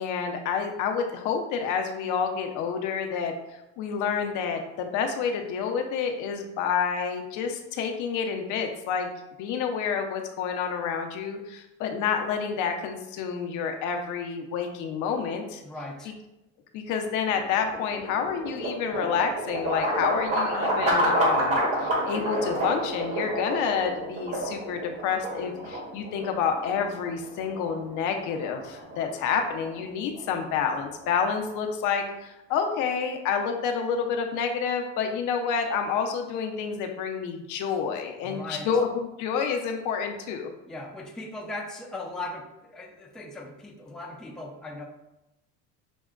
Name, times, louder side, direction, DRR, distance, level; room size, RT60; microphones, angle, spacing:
voice 1, 0.0-3.3 3.8-9.1 9.4-15.6 16.1-16.2 16.7-40.5, left 6 dB, 65° left, 4 dB, 0.6 m, -29 dB
voice 2, 15.6-16.1 38.2-38.7 40.7-44.8, left 2 dB, ahead, -1 dB, 0.4 m, -38 dB
sound 1, 17.3-31.4, right 1 dB, 45° right, 1.3 m, -30 dB
6.0 x 2.1 x 2.4 m, 0.93 s
supercardioid pair, 110°, 33 cm